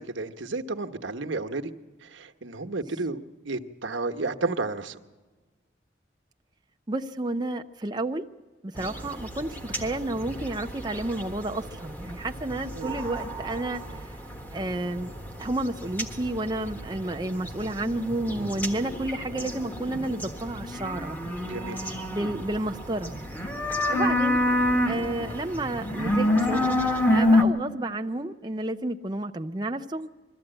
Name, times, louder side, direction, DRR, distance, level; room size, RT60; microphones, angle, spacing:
voice 1, 0.0-1.7 2.0-3.2 3.4-5.0 12.8-13.0 20.0-20.2 21.4-21.8, right 3 dB, 85° right, 6 dB, 1.1 m, -32 dB
voice 2, 6.9-8.2 8.6-14.1 14.5-15.1 15.4-23.1 23.9-24.4 24.9-26.7 27.1-30.1, right 2 dB, 20° right, 4 dB, 0.6 m, -31 dB
sound 1, 8.8-27.4, left 1 dB, 10° left, 1.4 m, -29 dB
21.5 x 14.0 x 8.8 m, 1.3 s
head